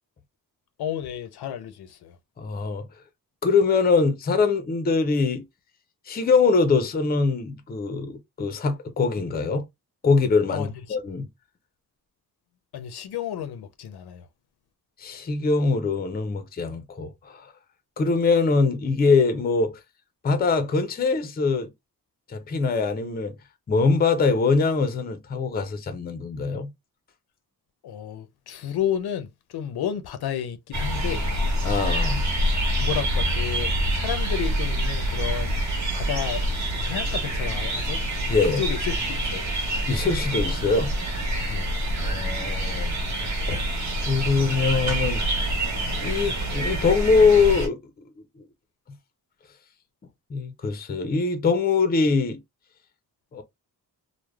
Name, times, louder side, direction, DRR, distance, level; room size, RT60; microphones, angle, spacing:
voice 1, 0.8-2.2 10.5-11.0 12.7-14.3 27.8-31.2 32.2-32.3 32.8-35.6 35.9-36.4 36.7-38.0 38.6-39.4 41.5-41.7, left 9 dB, 85° left, 0.6 m, -31 dB
voice 2, 2.4-2.9 3.4-5.4 6.1-9.6 10.0-11.3 15.0-17.5 18.0-19.8 20.2-21.7 22.3-23.3 23.7-26.7 31.6-32.2 38.3-38.6 39.9-40.9 42.0-43.0 43.5-43.6 44.0-45.5 46.0-47.8 50.3-52.4 53.3-53.4, left 4 dB, 25° left, 0.4 m, -23 dB
sound 1, 30.7-47.7, right 1 dB, 45° right, 1.1 m, -26 dB
3.2 x 2.0 x 2.2 m
wide cardioid pair, 155°, 38 cm